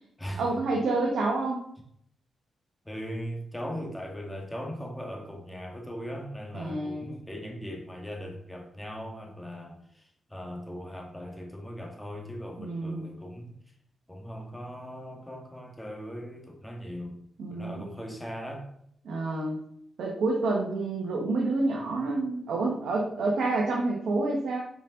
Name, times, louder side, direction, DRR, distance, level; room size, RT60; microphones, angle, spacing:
voice 1, 0.4-1.7 6.5-7.1 12.6-13.1 17.4-17.8 19.0-19.6 20.0-24.6, right 2 dB, 75° right, -2 dB, 1.2 m, -28 dB
voice 2, 2.9-13.5 14.1-17.2 17.5-18.7, equal, 10° left, 1 dB, 1.8 m, -39 dB
5.4 x 5.2 x 3.8 m, 0.68 s
supercardioid pair, 50°, 0 cm